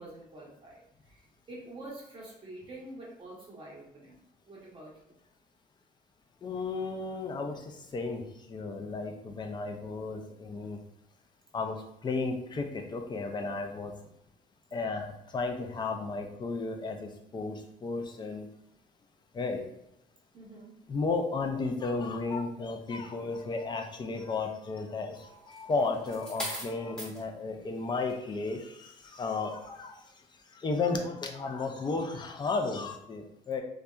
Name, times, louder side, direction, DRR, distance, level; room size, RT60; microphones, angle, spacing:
voice 1, 0.0-5.2 20.3-20.8, right 2 dB, 30° right, -5 dB, 0.8 m, -47 dB
voice 2, 6.4-10.8 11.5-13.9 14.7-18.5 19.3-19.6 20.9-30.1 30.5-33.6, left 3 dB, 25° left, 4 dB, 0.4 m, -34 dB
sound 1, 25.5-27.2 28.0-28.2, equal, 5° left, 0.8 m, -39 dB
2.7 x 2.2 x 2.2 m, 0.80 s
cardioid pair, 110°, 17 cm